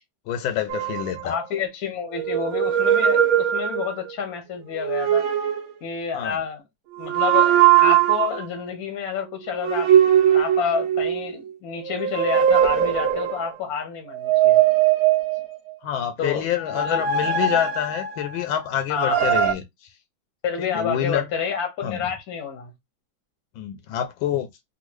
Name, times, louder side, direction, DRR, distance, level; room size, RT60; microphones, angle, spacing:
voice 1, 0.3-1.4 6.1-6.4 15.8-19.6 20.6-21.2 21.8-22.0 23.6-24.5, left 10 dB, 80° left, 1.3 m, -27 dB
sound 1, 0.7-1.6 2.1-4.1 4.7-5.7 7.0-8.4 9.6-11.3 11.8-13.5 14.1-15.7 16.6-18.4 19.0-19.5, right 10 dB, 70° right, 0.8 m, -20 dB
voice 2, 1.2-5.2 5.8-6.6 7.0-14.6 16.2-16.4 16.7-17.0 18.9-19.2 20.4-22.7, left 6 dB, 60° left, 1.0 m, -29 dB
3.5 x 2.3 x 3.1 m
omnidirectional pair, 2.2 m